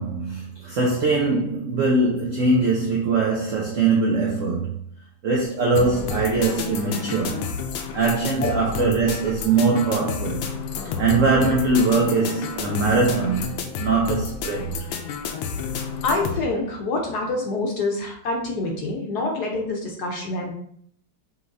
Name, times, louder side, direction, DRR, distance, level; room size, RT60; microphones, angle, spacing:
voice 1, 0.0-4.8 5.2-7.4 7.9-10.4 11.0-13.5 13.8-14.8, right 3 dB, 75° right, 0.7 m, -21 dB
sound 1, 5.8-16.4, left 6 dB, 85° left, 1.4 m, -30 dB
voice 2, 16.0-20.5, left 2 dB, 65° left, 1.1 m, -26 dB
5.4 x 2.9 x 2.6 m
omnidirectional pair, 2.2 m